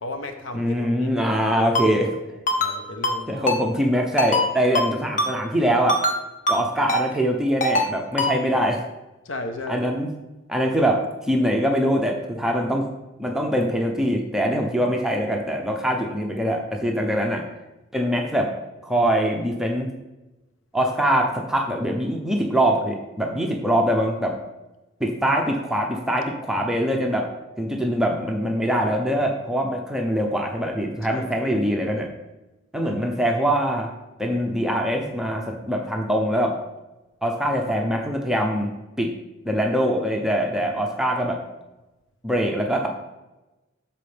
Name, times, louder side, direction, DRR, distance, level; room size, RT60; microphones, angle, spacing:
voice 1, 0.0-1.2 1.5-1.6 1.9-2.0 2.6-3.5 4.7-4.8 9.2-9.9 31.1-31.5, left 2 dB, 65° left, 6 dB, 0.8 m, -35 dB
voice 2, 0.5-2.1 3.3-6.0 6.5-8.8 9.7-10.1 10.5-12.9 13.2-17.5 17.9-18.5 18.8-19.9 20.7-24.4 25.0-27.3 27.6-32.1 32.7-33.9 34.2-36.6 37.2-38.7 39.0-39.1 39.4-41.4 42.2-42.9, equal, ahead, 1 dB, 0.6 m, -23 dB
Ringtone, 1.7-1.9 2.5-2.7 3.0-3.2 3.5-3.6 4.2-4.4 4.7-4.9 5.2-5.3 5.9-6.2 6.5-6.6 6.9-7.0 7.6-7.9 8.2-8.3, left 1 dB, 35° left, 0.8 m, -21 dB
12.5 x 4.2 x 3.4 m, 1.0 s
head